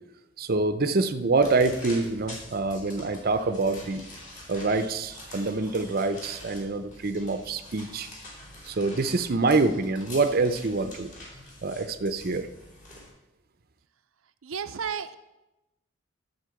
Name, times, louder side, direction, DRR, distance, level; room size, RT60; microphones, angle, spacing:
voice 1, 0.4-4.1 4.5-8.1 8.7-11.1 11.6-12.5, right 3 dB, 45° right, 9 dB, 0.6 m, -26 dB
sound 1, 1.3-13.1, left 1 dB, 40° left, 3.3 m, -46 dB
voice 2, 14.4-15.1, right 6 dB, 90° right, 8 dB, 0.6 m, -32 dB
11.5 x 4.4 x 7.7 m, 0.96 s
head